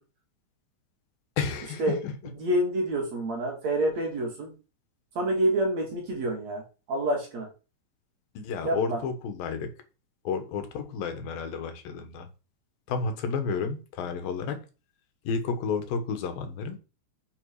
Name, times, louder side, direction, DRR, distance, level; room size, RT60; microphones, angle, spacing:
voice 1, 1.4-2.1 8.3-9.7 10.2-12.3 12.9-14.6 15.2-16.8, left 5 dB, 90° left, 7 dB, 3.4 m, -31 dB
voice 2, 2.4-4.5 5.2-6.6 6.9-7.5 8.6-9.0, right 1 dB, 50° right, 1 dB, 4.1 m, -27 dB
9.8 x 7.7 x 5.0 m, 0.33 s
omnidirectional pair, 4.0 m